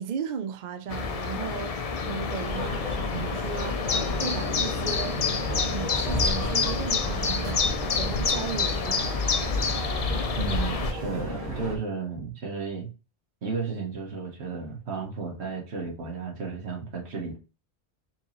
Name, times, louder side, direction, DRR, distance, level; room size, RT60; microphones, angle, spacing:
voice 1, 0.0-5.2 5.6-9.2, right 7 dB, 55° right, 0.5 m, -36 dB
sound 1, 0.9-10.9, left 5 dB, 50° left, 0.4 m, -28 dB
sound 2, 2.4-11.8, equal, 35° right, 1.2 m, -34 dB
voice 2, 10.4-12.9 13.4-17.4, right 4 dB, 75° right, 1.3 m, -33 dB
4.5 x 2.8 x 2.9 m
omnidirectional pair, 1.1 m